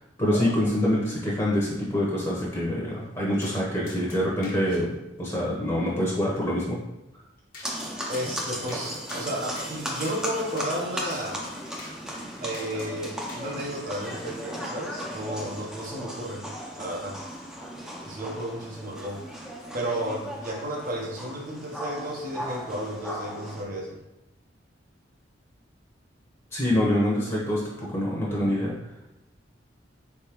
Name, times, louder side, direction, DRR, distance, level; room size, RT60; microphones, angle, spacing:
voice 1, 0.2-4.9 5.2-6.8 26.5-28.8, left 1 dB, 20° left, -5 dB, 0.9 m, -25 dB
sound 1, 3.4-3.6 3.9-4.8 7.5-7.7 8.1-8.3 8.7-8.8 9.1-9.7 10.0-10.2 10.6-10.7 11.1-11.2 11.8-12.0 12.5-12.9 13.3-13.6, left 2 dB, 50° left, 1.0 m, -44 dB
sound 2, 7.6-23.6, equal, 5° right, 0.6 m, -36 dB
voice 2, 8.1-11.4 12.4-16.4 16.7-17.2 18.1-19.2 19.7-24.0, right 1 dB, 50° right, -2 dB, 0.8 m, -33 dB
4.4 x 3.5 x 2.9 m, 0.98 s
head